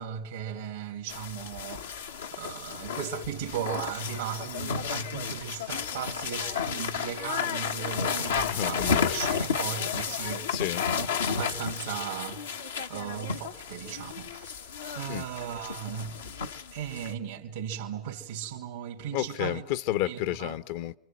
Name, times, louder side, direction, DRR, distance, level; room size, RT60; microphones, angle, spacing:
voice 1, 0.0-10.5 10.9-19.6 20.0-20.5, right 9 dB, 80° right, 2.9 m, -37 dB
sound 1, 1.1-17.1, left 6 dB, 90° left, 1.3 m, -32 dB
voice 2, 8.4-9.2 10.5-10.9 15.1-15.3 19.1-21.0, left 14 dB, 65° left, 1.0 m, -31 dB
29.0 x 25.0 x 7.6 m
hypercardioid pair, 85°, 0 cm